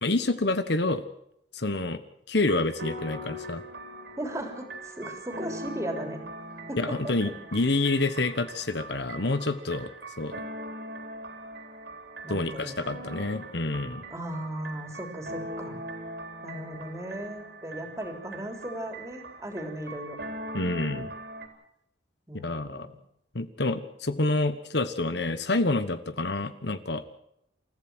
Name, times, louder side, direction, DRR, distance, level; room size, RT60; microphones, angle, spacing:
voice 1, 0.0-1.0 1.5-2.0 2.3-3.6 6.8-9.9 10.2-10.4 12.3-14.0 20.5-21.1 22.4-22.9 23.3-27.0, left 2 dB, 60° left, 11 dB, 1.3 m, -28 dB
sound 1, 2.4-21.5, right 1 dB, 60° right, 3.9 m, -41 dB
voice 2, 4.2-6.2 6.7-7.1 12.2-12.8 14.1-15.8 16.4-20.2 22.3-22.9, right 1 dB, 15° right, 5 dB, 3.5 m, -37 dB
29.0 x 15.0 x 6.3 m, 0.77 s
head